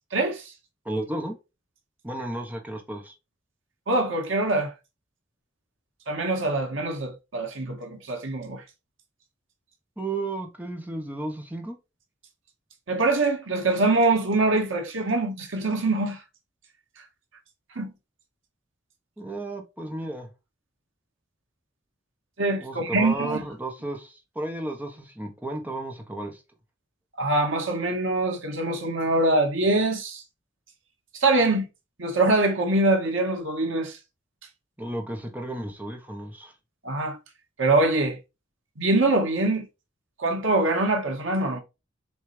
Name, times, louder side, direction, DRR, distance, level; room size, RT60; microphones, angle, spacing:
voice 1, 0.1-0.4 3.9-4.7 6.1-8.6 12.9-16.2 17.8-17.9 22.4-23.4 27.2-30.2 31.2-31.7 32.0-34.0 36.8-37.2 37.6-38.2 38.8-39.7 40.2-41.6, right 2 dB, 80° right, 1.8 m, -24 dB
voice 2, 0.8-1.4 2.0-3.1 10.0-11.8 19.2-20.3 22.6-26.4 34.8-36.5, right 2 dB, 10° right, 1.2 m, -33 dB
7.1 x 4.2 x 3.4 m
head